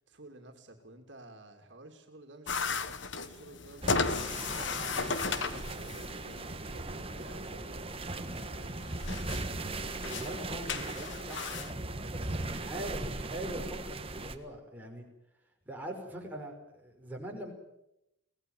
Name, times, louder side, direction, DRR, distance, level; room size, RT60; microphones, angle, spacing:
voice 1, 0.0-8.8, right 2 dB, 65° right, 4 dB, 2.9 m, -53 dB
sound 1, 2.5-11.7, left 4 dB, 75° left, 1.5 m, -36 dB
sound 2, 3.8-14.3, right 2 dB, 30° right, 1.5 m, -38 dB
voice 2, 10.1-15.0 15.7-17.5, right 1 dB, 10° right, 0 dB, 5.5 m, -42 dB
24.5 x 18.0 x 9.2 m, 0.85 s
head